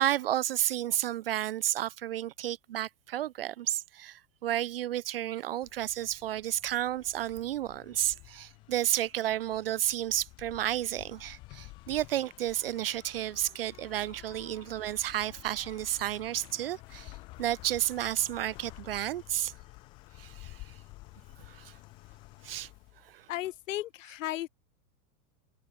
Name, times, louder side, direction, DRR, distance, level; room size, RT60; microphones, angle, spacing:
voice 1, 0.0-17.1 17.4-19.5 20.2-20.7 21.5-21.8 22.4-22.7 23.0-23.3, right 12 dB, 40° right, 0.5 m, -32 dB
sound 1, 5.6-23.8, left 22 dB, 10° left, 0.5 m, -51 dB
voice 2, 23.3-24.5, left 15 dB, 55° left, 1.2 m, -35 dB
supercardioid pair, 180°, 44 cm